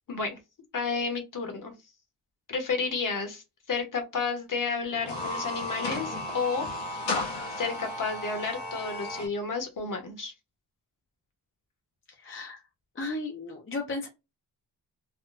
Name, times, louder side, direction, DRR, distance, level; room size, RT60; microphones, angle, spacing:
voice 1, 0.1-0.4 0.7-1.7 2.5-3.4 3.7-7.1 7.6-10.3, left 4 dB, 45° left, 5 dB, 1.0 m, -31 dB
sound 1, 4.9-9.3, left 2 dB, 90° left, 1.5 m, -34 dB
voice 2, 12.1-12.6 13.0-14.1, left 2 dB, 30° left, 1 dB, 0.5 m, -35 dB
3.6 x 2.1 x 2.5 m, 0.24 s
wide cardioid pair, 160°, 44 cm